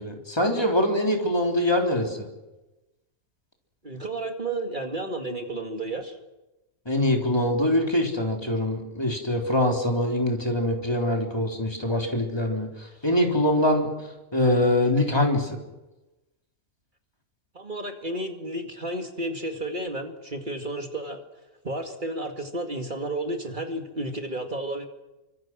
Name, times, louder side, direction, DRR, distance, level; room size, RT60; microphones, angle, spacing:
voice 1, 0.0-2.3 6.9-13.9 14.3-15.6, left 1 dB, 15° left, 1 dB, 3.9 m, -24 dB
voice 2, 3.8-6.2 17.5-21.2 21.6-24.8, right 1 dB, 35° right, 4 dB, 2.4 m, -32 dB
29.0 x 25.0 x 6.3 m, 1.0 s
omnidirectional pair, 1.5 m